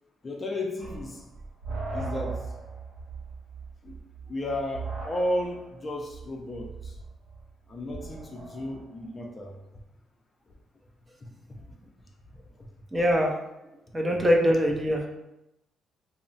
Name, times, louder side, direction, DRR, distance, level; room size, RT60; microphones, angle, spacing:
voice 1, 0.2-1.3 1.9-2.5 3.8-4.0 4.3-7.0 7.7-9.6 11.2-11.3 12.3-12.7 14.1-14.3, left 1 dB, 30° left, 1 dB, 0.5 m, -34 dB
sound 1, 0.8-8.9, right 3 dB, 80° right, 0.6 m, -39 dB
voice 2, 12.9-13.3 13.9-15.1, equal, 20° right, 1 dB, 0.5 m, -23 dB
2.3 x 2.0 x 3.8 m, 0.88 s
cardioid pair, 90°, 0 cm